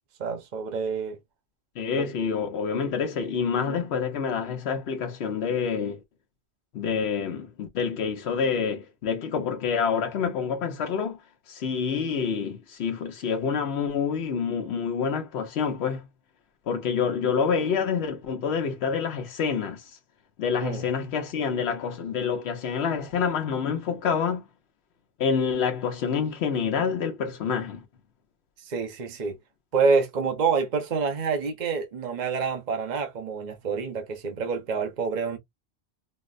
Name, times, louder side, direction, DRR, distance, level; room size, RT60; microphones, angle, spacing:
voice 1, 0.2-1.2 2.0-2.1 20.6-20.8 28.6-29.4 29.7-35.4, right 5 dB, 50° right, 0.8 m, -27 dB
voice 2, 1.8-6.0 6.7-11.2 11.5-16.1 16.7-20.0 20.4-24.5 25.2-27.8, left 6 dB, 80° left, 1.0 m, -27 dB
4.0 x 2.0 x 2.4 m
omnidirectional pair, 1.1 m